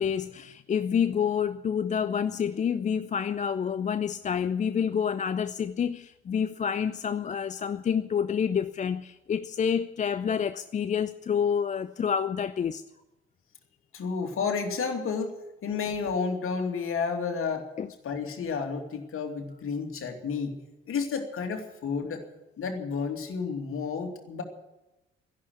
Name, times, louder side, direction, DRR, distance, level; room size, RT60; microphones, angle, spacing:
voice 1, 0.0-12.8 17.8-17.9, left 7 dB, 25° left, 0.5 m, -28 dB
voice 2, 13.9-15.3 15.6-17.7 18.0-20.5 20.9-22.2 22.6-24.4, left 5 dB, 45° left, 2.7 m, -31 dB
13.0 x 11.0 x 9.5 m
figure-of-eight pair, 50°, 31 cm